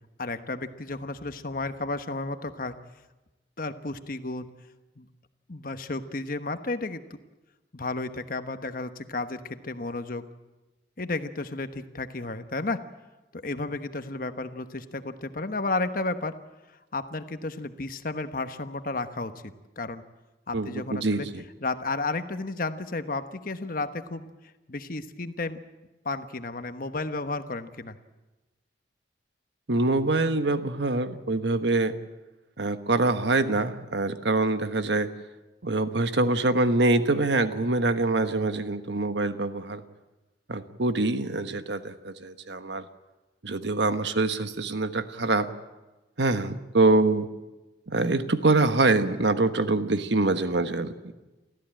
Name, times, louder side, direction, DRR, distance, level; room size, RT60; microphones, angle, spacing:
voice 1, 0.2-2.7 3.6-4.5 5.0-5.1 5.5-7.0 7.7-10.2 11.0-12.8 13.3-16.3 16.9-20.0 20.5-21.3 21.6-24.3 24.7-25.6 26.0-28.0, left 3 dB, 50° left, 9 dB, 1.2 m, -32 dB
voice 2, 20.5-21.4 29.7-31.9 32.6-35.1 35.6-39.8 40.5-42.8 43.4-45.5 46.2-47.3 47.9-51.1, right 2 dB, 75° right, 10 dB, 1.2 m, -25 dB
29.5 x 14.0 x 8.9 m, 1.1 s
head